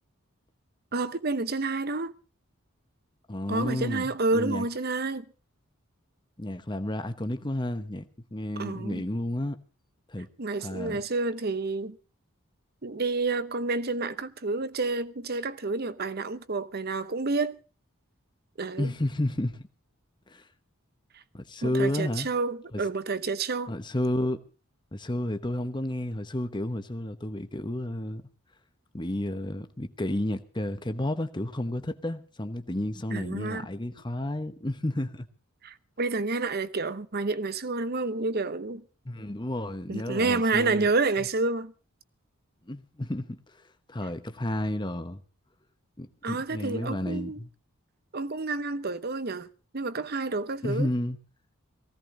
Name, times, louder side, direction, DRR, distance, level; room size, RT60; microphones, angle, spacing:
voice 1, 0.9-2.1 3.5-5.2 8.6-9.0 10.4-12.0 12.8-17.6 18.6-18.9 21.6-23.7 33.1-33.7 35.6-38.8 39.9-41.7 46.2-47.4 48.1-49.5 49.7-50.9, right 3 dB, 45° right, 0.9 m, -29 dB
voice 2, 3.3-4.7 6.4-9.6 10.1-10.3 10.6-11.0 18.8-19.6 20.3-20.4 21.3-22.3 22.7-22.8 23.7-24.4 24.9-28.2 28.9-35.3 39.0-40.9 42.7-43.4 43.9-45.2 46.0-47.5 50.6-51.2, left 1 dB, 20° left, 1.0 m, -31 dB
19.0 x 16.5 x 3.9 m
head